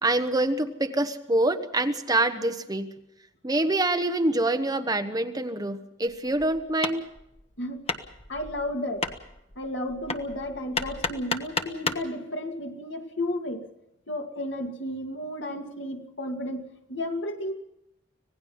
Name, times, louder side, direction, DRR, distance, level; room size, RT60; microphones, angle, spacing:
voice 1, 0.0-2.9 3.4-7.1, right 2 dB, 20° right, 7 dB, 1.1 m, -25 dB
Hammer, 6.1-12.1, left 3 dB, 35° left, 1.2 m, -34 dB
voice 2, 7.6-7.9 8.3-9.1 9.6-13.7 14.1-17.5, left 1 dB, 65° left, 3 dB, 2.3 m, -33 dB
26.0 x 18.0 x 5.6 m, 0.85 s
head